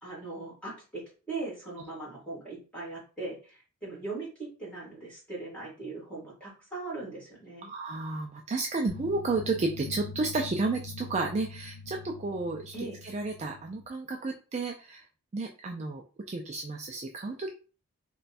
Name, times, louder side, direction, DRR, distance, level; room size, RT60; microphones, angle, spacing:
voice 1, 0.0-7.7 12.7-13.0, right 3 dB, 5° left, -5 dB, 1.8 m, -39 dB
voice 2, 7.6-12.7 13.0-15.1 15.3-17.5, right 3 dB, 30° right, 2 dB, 0.3 m, -32 dB
sound 1, 8.9-13.9, left 3 dB, 70° left, 0.4 m, -44 dB
3.3 x 2.2 x 4.0 m, 0.36 s
head